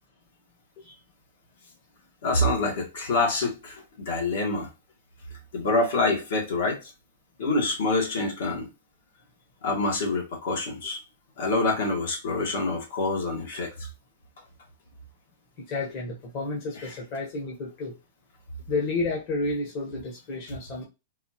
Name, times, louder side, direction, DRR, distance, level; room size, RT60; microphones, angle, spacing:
voice 1, 2.2-4.7 5.5-6.9 7.4-8.7 9.6-11.0 11.4-13.9, left 2 dB, 70° left, 1.8 m, -26 dB
voice 2, 15.7-17.9 18.7-20.8, left 3 dB, 40° left, 1.1 m, -31 dB
4.1 x 2.6 x 2.9 m
hypercardioid pair, 150°, 0 cm